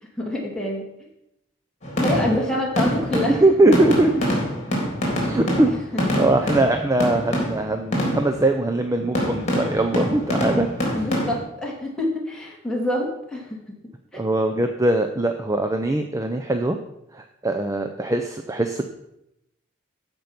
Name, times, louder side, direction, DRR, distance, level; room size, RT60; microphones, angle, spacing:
voice 1, 0.2-0.8 2.0-3.4 5.7-6.0 10.9-13.6 14.1-14.2, left 1 dB, 5° left, -3 dB, 2.6 m, -26 dB
sound 1, 1.8-8.5 9.1-11.4, equal, 35° left, 3.6 m, -25 dB
voice 2, 3.2-4.1 5.2-5.7 6.0-10.7 14.1-16.8 17.1-18.9, right 2 dB, 15° right, 5 dB, 0.6 m, -21 dB
14.5 x 5.3 x 6.0 m, 0.83 s
head